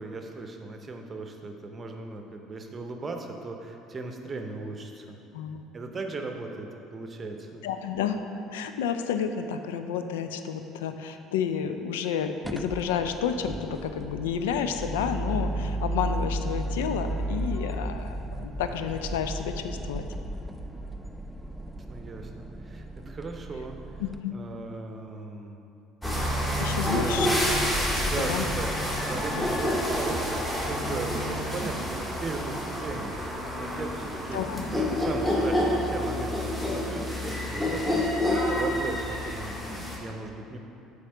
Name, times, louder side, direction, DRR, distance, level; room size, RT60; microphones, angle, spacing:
voice 1, 0.0-5.2 5.7-7.6 21.9-24.0 24.3-25.6 27.0-27.3 28.0-28.7 29.0-40.6, right 3 dB, 30° right, 4 dB, 0.7 m, -37 dB
voice 2, 7.6-8.2 8.5-20.0 24.0-24.3 26.6-27.3 27.8-28.5 29.4-29.5 34.3-34.7, left 7 dB, 70° left, 8 dB, 0.4 m, -30 dB
sound 1, 12.4-24.2, right 1 dB, ahead, 0.4 m, -34 dB
sound 2, 26.0-40.0, left 1 dB, 15° left, 1.6 m, -28 dB
7.6 x 3.6 x 5.5 m, 2.8 s
figure-of-eight pair, 60°, 0 cm